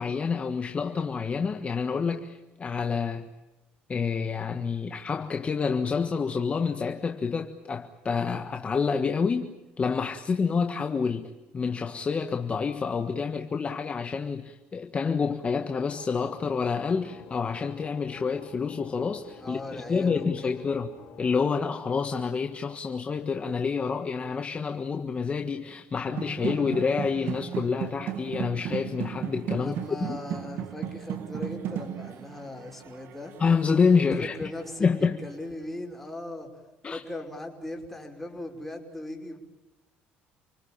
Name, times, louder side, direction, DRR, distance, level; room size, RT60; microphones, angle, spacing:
voice 1, 0.0-3.3 3.9-20.9 21.2-29.7 30.1-30.2 33.4-34.5 34.8-35.2 36.8-37.0, left 5 dB, 30° left, 1.6 m, -28 dB
sound 1, 15.6-21.4, left 8 dB, 65° left, 4.0 m, -49 dB
voice 2, 19.4-20.6 29.6-33.3 34.2-36.5 36.9-39.4, left 1 dB, 5° left, 5.5 m, -38 dB
sound 2, 26.1-35.0, right 9 dB, 65° right, 2.0 m, -36 dB
29.5 x 19.5 x 9.0 m
cardioid pair, 95°, 4 cm